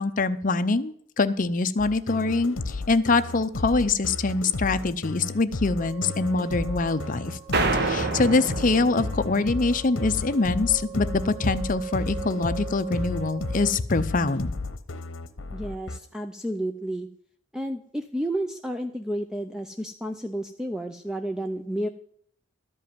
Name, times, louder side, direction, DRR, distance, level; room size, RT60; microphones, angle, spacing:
voice 1, 0.0-7.4 7.7-14.5, left 3 dB, 40° left, 11 dB, 0.6 m, -24 dB
sound 1, 1.8-16.0, left 3 dB, 80° left, 0.9 m, -33 dB
sound 2, 5.8-13.7, right 8 dB, 30° right, 1.5 m, -40 dB
sound 3, 7.5-9.9, right 3 dB, 55° right, 1.2 m, -28 dB
voice 2, 15.5-17.1 17.5-21.9, right 1 dB, 5° right, 6 dB, 0.5 m, -31 dB
13.0 x 5.5 x 9.2 m, 0.63 s
head